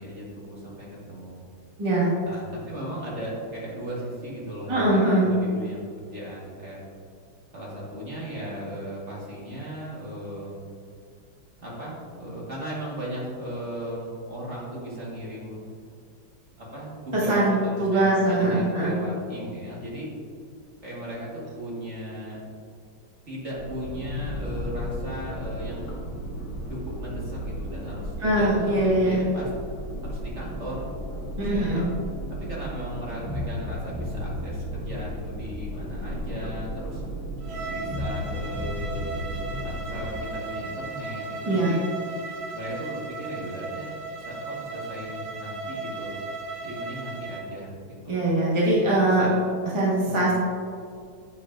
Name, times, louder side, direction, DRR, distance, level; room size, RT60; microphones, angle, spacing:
voice 1, 0.0-1.4 2.2-6.8 7.5-10.7 11.6-15.6 16.6-20.1 20.8-22.4 23.3-26.2 26.7-29.5 30.0-30.9 31.3-31.8 32.3-37.0 37.7-39.2 39.6-41.8 42.5-43.9 44.3-46.1 46.6-48.2 48.9-49.3 50.0-50.3, equal, 35° right, -6 dB, 1.8 m, -36 dB
voice 2, 1.8-2.1 4.7-5.3 17.1-18.9 28.2-29.2 31.4-31.8 41.4-41.7 48.1-49.2 49.7-50.3, right 1 dB, 20° right, -7 dB, 1.1 m, -22 dB
sound 1, 23.6-40.2, equal, 55° left, 2.1 m, -34 dB
Bowed string instrument, 37.4-47.5, right 3 dB, 75° right, 1.6 m, -36 dB
8.7 x 6.8 x 2.6 m, 2.3 s
omnidirectional pair, 2.2 m